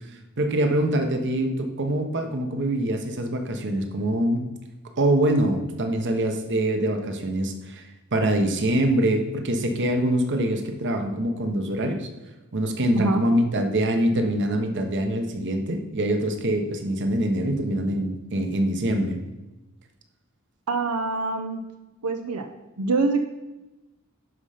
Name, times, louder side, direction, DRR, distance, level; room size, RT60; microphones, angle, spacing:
voice 1, 0.4-4.5 5.0-12.1 12.5-19.2, right 1 dB, 55° right, 5 dB, 1.1 m, -24 dB
voice 2, 20.7-21.6 22.0-22.5 22.8-23.2, right 3 dB, 85° right, 6 dB, 0.7 m, -25 dB
11.0 x 5.4 x 5.0 m, 1.0 s
head